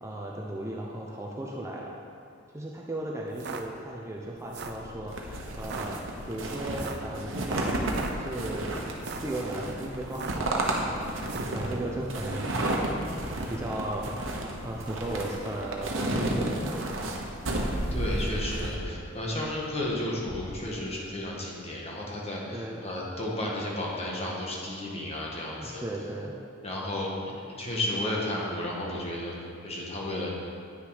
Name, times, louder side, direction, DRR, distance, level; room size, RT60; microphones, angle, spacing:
voice 1, 0.0-1.9 2.5-5.3 5.6-6.0 6.3-8.6 9.2-11.1 11.5-12.6 13.5-14.1 14.6-17.0 22.5-22.8 25.6-26.3, right 1 dB, 15° right, -2 dB, 0.7 m, -36 dB
sound 1, 3.3-3.6 4.4-4.8 5.6-5.9 6.8-7.1 7.8-8.1 8.9-9.3 10.1-10.5 11.2-11.6, right 5 dB, 55° right, 0.6 m, -39 dB
Purr, 4.2-21.1, left 2 dB, 75° left, 0.6 m, -47 dB
sound 2, 5.1-18.7, right 1 dB, 75° right, 1.1 m, -32 dB
voice 2, 17.9-25.8 26.6-30.3, left 1 dB, 30° left, -3 dB, 1.6 m, -33 dB
9.7 x 6.5 x 5.0 m, 2.3 s
head